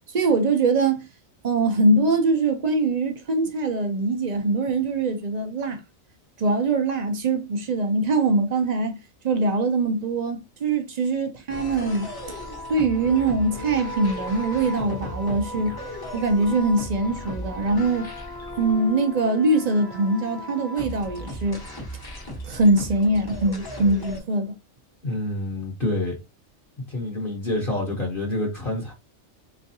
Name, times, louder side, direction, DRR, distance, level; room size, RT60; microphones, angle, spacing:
voice 1, 0.1-1.1 1.4-5.8 6.4-8.9 9.2-12.1 12.7-15.7 16.1-18.1 18.6-21.6 22.4-24.5, right 2 dB, 60° right, 0.4 m, -22 dB
sound 1, 11.5-24.2, equal, 25° left, 0.6 m, -36 dB
voice 2, 25.0-26.1 26.9-28.9, left 1 dB, 45° left, 1.0 m, -27 dB
3.5 x 3.1 x 2.6 m
omnidirectional pair, 1.4 m